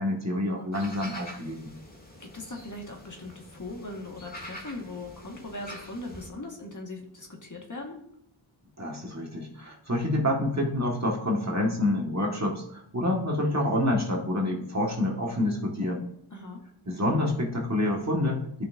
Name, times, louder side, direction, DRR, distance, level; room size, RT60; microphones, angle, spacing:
voice 1, 0.0-1.7 8.8-16.0 16.9-18.7, left 1 dB, 35° right, -1 dB, 2.0 m, -27 dB
sound 1, 0.7-6.3, left 1 dB, 20° left, 1.8 m, -45 dB
voice 2, 2.2-8.0 16.3-16.6, left 2 dB, 40° left, 0 dB, 1.9 m, -40 dB
14.0 x 5.7 x 2.8 m, 0.72 s
wide cardioid pair, 70°, 48 cm